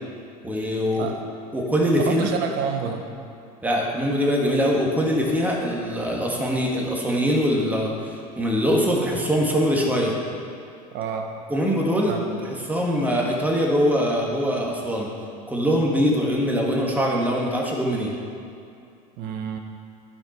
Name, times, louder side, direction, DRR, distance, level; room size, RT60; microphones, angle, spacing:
voice 1, 0.4-1.1 1.5-2.3 3.6-10.1 11.5-15.1 15.5-18.2, equal, 10° right, -2 dB, 1.9 m, -23 dB
voice 2, 2.1-3.0 10.9-11.3 12.1-12.2 19.2-19.6, right 7 dB, 55° right, 4 dB, 1.1 m, -28 dB
13.0 x 5.1 x 4.4 m, 2.5 s
hypercardioid pair, 80°, 20 cm